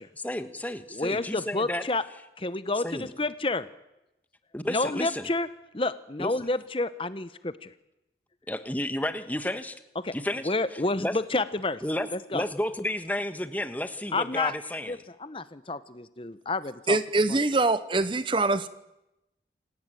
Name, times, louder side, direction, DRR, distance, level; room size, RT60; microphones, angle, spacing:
voice 1, 0.2-1.8 2.8-3.1 4.5-5.3 6.2-6.3 8.5-9.8 10.1-10.5 11.0-11.1 11.8-12.1 12.3-14.9, left 1 dB, 10° left, 10 dB, 1.4 m, -31 dB
voice 2, 0.9-2.0 2.4-3.7 4.7-5.5 5.7-7.7 9.9-10.1 10.4-11.8 12.1-12.4 14.1-14.5 14.8-17.0 17.3-17.4, left 2 dB, 30° left, 14 dB, 0.9 m, -29 dB
voice 3, 16.9-18.7, right 2 dB, 30° right, 14 dB, 0.9 m, -24 dB
28.0 x 17.5 x 9.2 m, 0.90 s
head